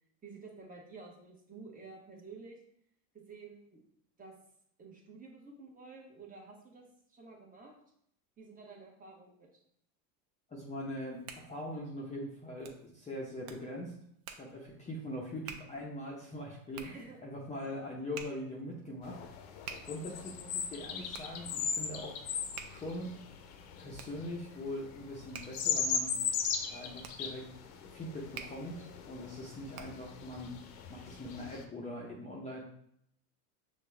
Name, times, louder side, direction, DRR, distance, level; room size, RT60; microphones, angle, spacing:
voice 1, 0.2-2.6 3.1-3.8 4.2-4.3 4.8-7.7 8.4-9.5 16.8-17.2 19.9-20.1 29.7-29.8, right 4 dB, 20° right, -1 dB, 1.1 m, -51 dB
voice 2, 10.5-13.9 14.3-19.2 19.8-22.2 22.7-23.2 23.8-26.1 26.7-27.5 27.9-30.5 30.9-32.6, left 1 dB, 15° left, -3 dB, 0.6 m, -42 dB
Hands, 10.8-30.2, right 6 dB, 65° right, 0.7 m, -52 dB
sound 1, 19.0-31.6, left 6 dB, 70° left, 0.8 m, -39 dB
5.9 x 2.4 x 3.3 m, 0.71 s
supercardioid pair, 110°, 45 cm